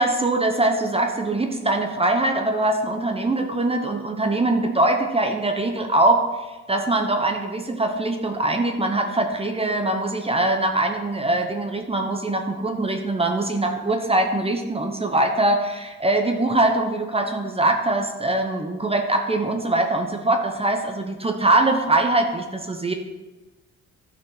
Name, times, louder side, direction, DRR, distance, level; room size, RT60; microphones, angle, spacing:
voice 1, 0.0-6.2 6.7-22.9, right 2 dB, 20° right, 4 dB, 1.0 m, -22 dB
12.0 x 6.1 x 4.0 m, 1.2 s
cardioid pair, 90°, 30 cm